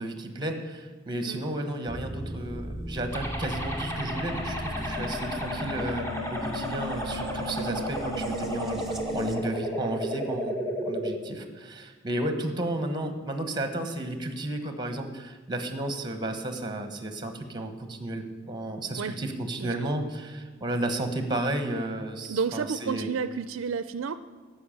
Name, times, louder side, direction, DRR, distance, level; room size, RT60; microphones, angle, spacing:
voice 1, 0.0-10.6 10.9-23.1, right 1 dB, 20° right, 7 dB, 1.1 m, -33 dB
sound 1, 1.9-9.4, equal, ahead, 1.0 m, -36 dB
sound 2, 3.1-11.1, equal, 15° left, 1.5 m, -33 dB
voice 2, 22.3-24.2, right 5 dB, 75° right, 13 dB, 0.4 m, -30 dB
12.5 x 5.8 x 8.6 m, 1.4 s
head